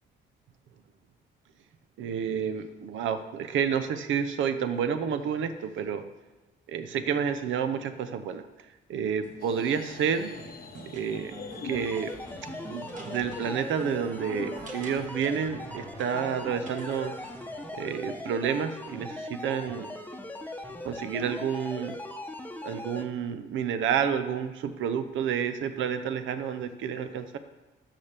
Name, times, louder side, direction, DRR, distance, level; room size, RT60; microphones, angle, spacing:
voice 1, 2.0-6.0 6.7-8.5 8.9-10.3 10.9-12.1 12.7-17.1 17.8-19.9 20.8-22.0 22.6-27.4, right 7 dB, 75° right, 10 dB, 0.8 m, -30 dB
sound 1, 9.2-18.2, right 3 dB, 40° right, 1.4 m, -46 dB
sound 2, 9.4-15.1, left 6 dB, 50° left, 0.9 m, -44 dB
sound 3, 11.7-23.1, left 1 dB, 10° left, 0.9 m, -40 dB
13.0 x 5.8 x 3.5 m, 1.2 s
cardioid pair, 90°, 20 cm